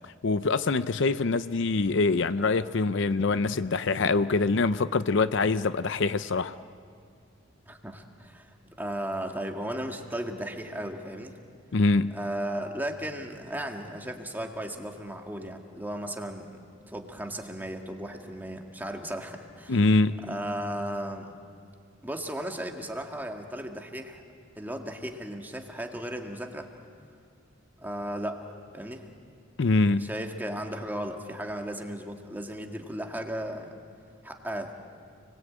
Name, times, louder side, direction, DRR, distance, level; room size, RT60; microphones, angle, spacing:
voice 1, 0.2-6.5 11.7-12.2 19.7-20.2 29.6-30.1, left 3 dB, 65° left, 13 dB, 0.6 m, -24 dB
voice 2, 7.7-11.4 12.1-16.6 16.9-19.8 20.2-21.4 22.0-24.2 24.6-26.7 27.8-28.4 28.7-29.1 30.0-33.8 34.2-34.7, right 1 dB, 10° right, 3 dB, 1.9 m, -35 dB
29.5 x 20.5 x 8.7 m, 2.2 s
head